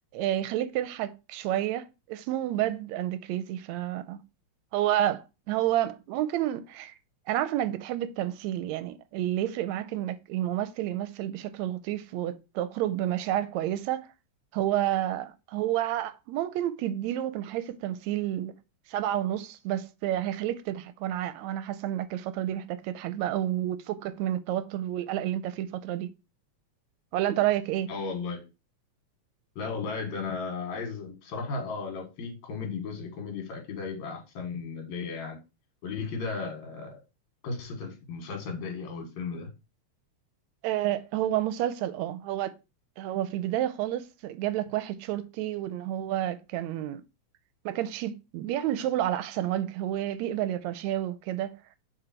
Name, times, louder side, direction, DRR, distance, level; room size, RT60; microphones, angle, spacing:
voice 1, 0.1-4.2 4.7-7.0 7.3-14.1 14.5-18.5 18.9-26.1 27.1-27.9 40.6-42.5 43.0-47.0 47.7-51.5, right 12 dB, 80° right, 1.9 m, -30 dB
voice 2, 27.9-28.5 29.6-35.4 35.8-36.9 37.4-39.5, left 4 dB, 75° left, 3.0 m, -35 dB
6.8 x 4.0 x 4.4 m
omnidirectional pair, 3.3 m